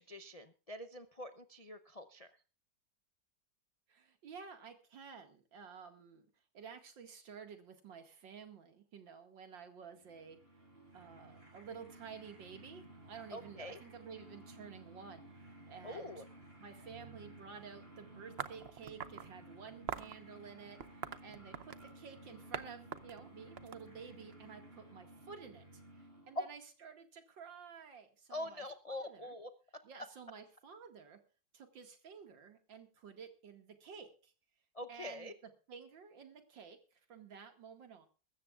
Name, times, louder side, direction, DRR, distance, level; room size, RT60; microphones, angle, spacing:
voice 1, 0.0-2.3 13.3-13.8 15.8-16.2 28.3-29.5 34.7-35.3, left 1 dB, 50° left, 8 dB, 0.4 m, -45 dB
voice 2, 3.9-6.3 6.5-10.4 10.9-16.2 16.6-29.4 29.8-31.2 31.5-34.3 34.9-35.3 35.7-38.1, right 6 dB, 90° right, 6 dB, 2.7 m, -52 dB
sound 1, 9.9-26.6, right 1 dB, 30° right, 6.8 m, -56 dB
sound 2, 18.4-19.3 19.9-20.2 20.8-21.9 22.5-22.7 22.9-24.3, right 8 dB, 60° right, 0.6 m, -43 dB
22.5 x 13.5 x 2.4 m, 0.36 s
omnidirectional pair, 2.0 m